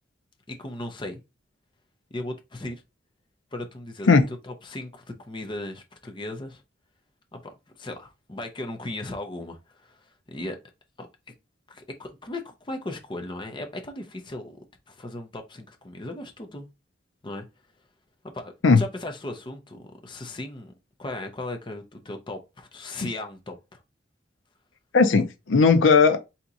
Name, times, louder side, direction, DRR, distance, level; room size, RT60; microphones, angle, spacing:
voice 1, 0.5-1.2 2.1-2.8 3.5-4.2 4.4-6.6 7.3-7.4 7.8-10.6 11.0-11.1 11.7-14.6 14.9-16.7 17.2-17.4 18.3-20.7 21.0-23.8, left 1 dB, 25° left, 0.7 m, -37 dB
voice 2, 24.9-26.2, left 4 dB, 75° left, 0.6 m, -17 dB
3.6 x 2.8 x 3.9 m
head